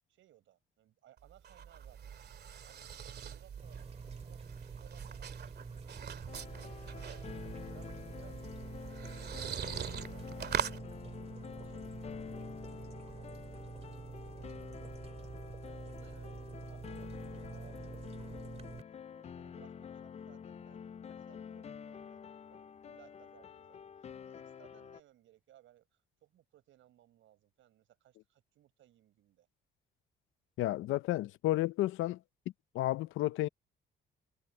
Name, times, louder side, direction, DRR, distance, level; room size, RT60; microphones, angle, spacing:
voice 1, 0.1-3.9 4.2-4.4 4.8-6.0 6.8-9.3 9.6-10.7 11.4-11.9 12.3-12.7 13.0-18.7 19.1-29.5, right 13 dB, 80° right, 6.6 m, -64 dB
sound 1, 1.2-10.8, right 8 dB, 55° right, 2.2 m, -42 dB
sound 2, 3.6-18.8, right 4 dB, 30° right, 2.4 m, -47 dB
sound 3, 6.3-25.0, left 7 dB, 35° left, 0.4 m, -48 dB
voice 2, 30.6-32.2 32.7-33.5, left 16 dB, 90° left, 0.6 m, -31 dB
cardioid pair, 90°, 20 cm